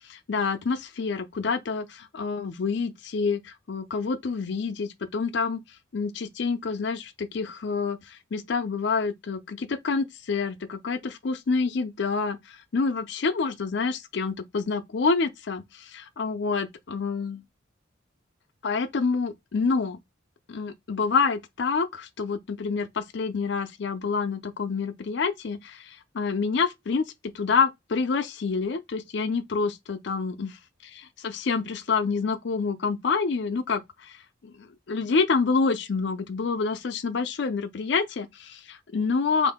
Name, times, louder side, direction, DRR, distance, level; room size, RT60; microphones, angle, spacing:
voice 1, 0.1-5.6 5.9-8.0 8.3-12.4 12.7-15.6 15.9-17.4 18.6-20.0 20.5-25.8 26.1-30.6 30.9-33.8 34.4-39.5, left 4 dB, 60° left, 0.5 m, -27 dB
2.6 x 2.5 x 3.5 m
head